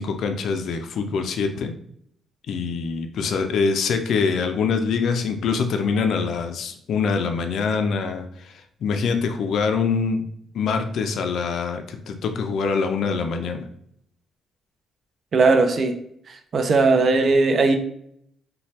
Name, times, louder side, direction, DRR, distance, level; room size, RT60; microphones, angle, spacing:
voice 1, 0.0-1.7 2.5-10.2 10.5-13.7, left 5 dB, 70° left, 6 dB, 0.3 m, -24 dB
voice 2, 15.3-16.0 16.3-17.8, right 3 dB, 50° right, 7 dB, 0.4 m, -18 dB
2.7 x 2.2 x 3.1 m, 0.69 s
cardioid pair, 90°, 0 cm